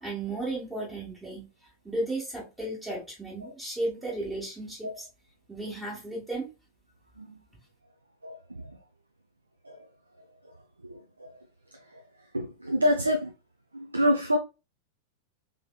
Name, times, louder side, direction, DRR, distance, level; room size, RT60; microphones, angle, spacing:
voice 1, 0.0-1.5 1.8-5.1 5.5-6.5, right 2 dB, 10° right, 1.6 m, -34 dB
voice 2, 12.3-13.3 13.7-14.4, equal, 80° right, 0.4 m, -26 dB
3.4 x 3.4 x 2.3 m
figure-of-eight pair, 90°, 0 cm